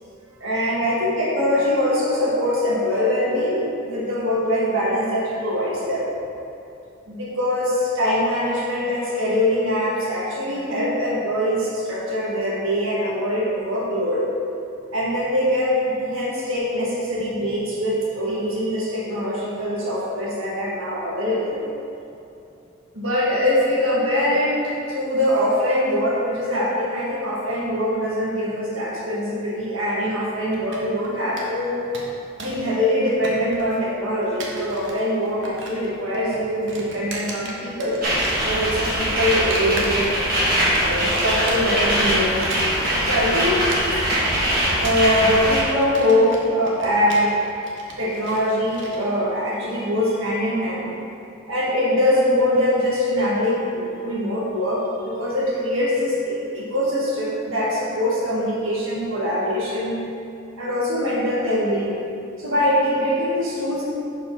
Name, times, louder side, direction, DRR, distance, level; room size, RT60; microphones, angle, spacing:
voice 1, 0.4-6.1 7.1-14.2 14.9-21.6 22.9-31.8 32.4-38.0 38.4-40.2 40.8-42.3 43.0-43.6 44.8-47.4 48.0-50.9 51.5-60.0 60.6-62.0 62.4-63.8, left 1 dB, 80° right, -6 dB, 1.4 m, -23 dB
sound 1, 30.5-31.1 31.4-31.5 31.7-32.7 32.9-33.8 34.2-35.0 35.3-35.9 36.1-38.0 38.2-39.0 39.5-40.4 40.7-41.9 42.3-49.0, right 2 dB, 60° right, 0.9 m, -35 dB
sound 2, 38.0-45.6, equal, 45° right, 1.6 m, -22 dB
5.2 x 4.6 x 5.7 m, 2.7 s
head